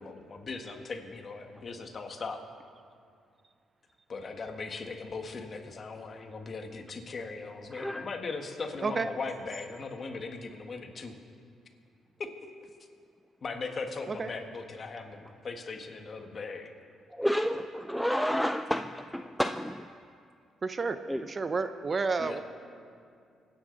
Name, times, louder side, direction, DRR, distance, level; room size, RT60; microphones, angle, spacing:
voice 1, 0.0-2.4 4.1-11.2 12.2-12.3 13.4-15.2 15.4-16.7 22.2-22.4, left 4 dB, 45° left, 4 dB, 1.6 m, -39 dB
voice 2, 7.7-8.1 17.1-19.9 21.1-21.3, equal, ahead, 8 dB, 0.4 m, -30 dB
voice 3, 20.6-21.0 21.3-22.4, right 4 dB, 35° right, 10 dB, 0.7 m, -30 dB
24.0 x 9.8 x 4.0 m, 2.3 s
cardioid pair, 90°, 0 cm